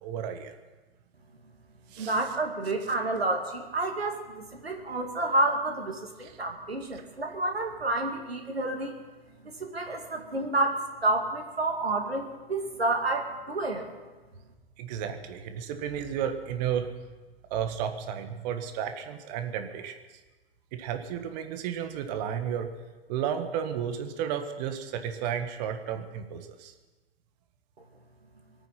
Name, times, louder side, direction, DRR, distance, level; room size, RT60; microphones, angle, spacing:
voice 1, 0.0-0.5 1.9-2.2 6.2-6.4 14.8-16.9 17.5-20.0 20.7-22.7 23.1-26.7, right 8 dB, 45° right, 7 dB, 1.7 m, -33 dB
voice 2, 2.0-8.9 9.4-13.9, right 2 dB, 80° right, 3 dB, 2.4 m, -29 dB
24.5 x 9.0 x 5.9 m, 1.3 s
figure-of-eight pair, 95°, 30 cm